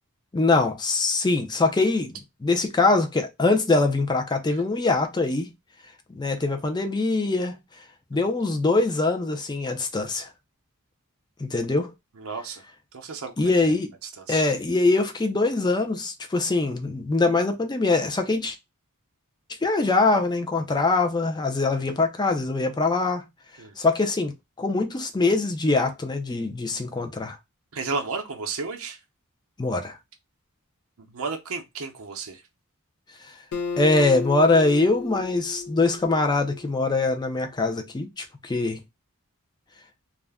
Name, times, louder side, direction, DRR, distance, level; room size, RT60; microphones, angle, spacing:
voice 1, 0.3-2.1 2.4-5.5 6.1-7.5 8.1-10.3 11.4-11.9 13.4-13.9 14.3-18.5 19.6-23.2 23.8-24.3 24.6-27.4 29.6-30.0 33.8-38.8, left 3 dB, 20° left, 0.4 m, -23 dB
voice 2, 12.2-12.6 12.9-13.7 14.2-14.4 23.6-23.8 27.7-29.0 31.0-32.4, right 4 dB, 65° right, 0.6 m, -33 dB
Acoustic guitar, 33.5-36.9, left 5 dB, 85° left, 0.4 m, -34 dB
2.4 x 2.1 x 3.3 m
head